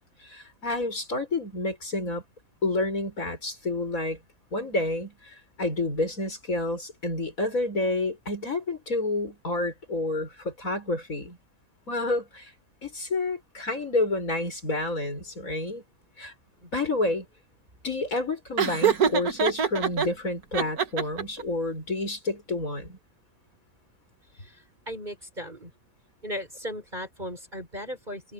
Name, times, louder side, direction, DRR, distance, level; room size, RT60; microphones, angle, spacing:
voice 1, 0.2-2.2 2.6-4.2 4.5-11.4 11.9-12.5 12.8-15.8 16.2-16.3 16.7-17.3 17.8-23.0, left 2 dB, 65° left, 6.8 m, -29 dB
Laughter, 18.6-20.1 20.5-21.4, right 7 dB, 80° right, 2.1 m, -24 dB
voice 2, 24.3-25.7 26.2-28.3, equal, 30° right, 5.6 m, -37 dB
omnidirectional pair, 1.5 m